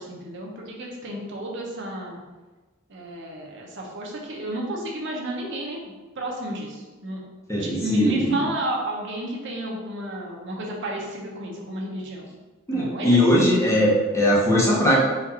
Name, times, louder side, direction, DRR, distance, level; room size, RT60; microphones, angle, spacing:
voice 1, 0.0-2.2 2.9-7.2 7.6-12.3 12.7-13.2, right 1 dB, 65° right, -1 dB, 0.8 m, -32 dB
voice 2, 7.5-8.3 12.7-15.0, equal, 15° left, -4 dB, 0.9 m, -20 dB
4.4 x 2.5 x 4.2 m, 1.2 s
head